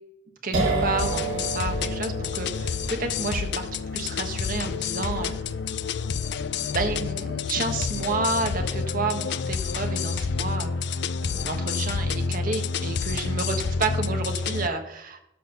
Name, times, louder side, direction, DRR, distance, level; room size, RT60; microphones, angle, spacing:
voice 1, 0.4-3.7 3.9-5.3 6.5-15.2, right 3 dB, 50° right, 5 dB, 1.3 m, -30 dB
sound 1, 0.5-8.1, right 3 dB, 75° right, 3.1 m, -32 dB
sound 2, 1.0-14.7, left 5 dB, 65° left, 0.4 m, -29 dB
12.5 x 4.3 x 6.7 m, 0.83 s
head